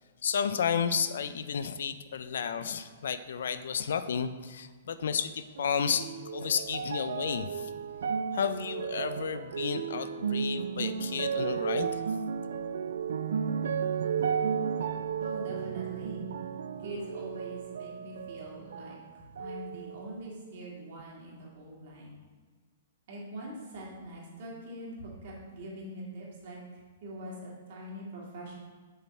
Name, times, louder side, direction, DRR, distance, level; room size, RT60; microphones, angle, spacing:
voice 1, 0.2-7.7 8.3-12.0, left 7 dB, 65° left, 11 dB, 0.4 m, -32 dB
sound 1, 5.6-19.0 19.4-20.3 21.0-21.1, right 7 dB, 80° right, 0.4 m, -34 dB
voice 2, 15.2-16.2 16.8-22.1 23.1-28.5, right 1 dB, 40° right, -3 dB, 2.1 m, -43 dB
6.6 x 6.4 x 4.2 m, 1.5 s
hypercardioid pair, 180°, 0 cm